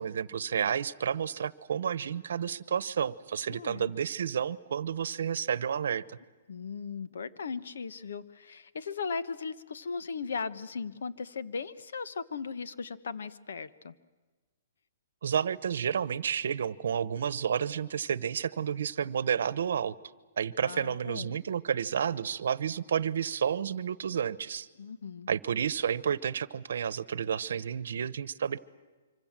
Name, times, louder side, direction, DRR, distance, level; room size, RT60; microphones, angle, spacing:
voice 1, 0.0-6.2 15.2-19.9 20.4-24.7 25.3-28.6, right 8 dB, 75° right, 18 dB, 1.0 m, -31 dB
voice 2, 3.5-3.9 6.5-14.0 20.6-21.4 24.8-25.3, left 5 dB, 85° left, 13 dB, 1.2 m, -37 dB
25.5 x 25.0 x 7.5 m, 1.3 s
hypercardioid pair, 160°, 0 cm